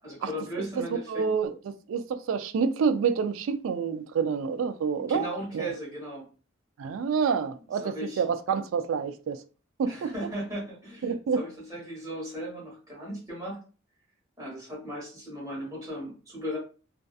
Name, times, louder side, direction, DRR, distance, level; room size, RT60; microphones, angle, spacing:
voice 1, 0.0-1.3 5.1-6.2 7.8-8.2 9.9-13.6 14.4-16.6, equal, 20° right, 1.2 m, -37 dB
voice 2, 0.6-5.3 5.5-5.7 6.8-9.4 9.8-10.1 11.0-11.4, right 6 dB, 80° right, 0.3 m, -28 dB
2.6 x 2.3 x 2.3 m
head